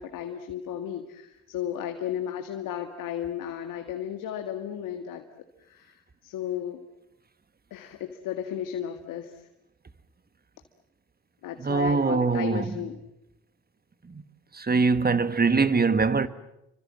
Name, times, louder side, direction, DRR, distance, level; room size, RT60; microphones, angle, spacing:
voice 1, 0.0-5.2 5.6-6.8 7.7-9.4 11.4-13.0, left 10 dB, 75° left, 2.0 m, -34 dB
voice 2, 11.6-12.7 14.5-16.3, right 4 dB, 30° right, 1.7 m, -22 dB
28.5 x 25.0 x 7.6 m
supercardioid pair, 55°, 33 cm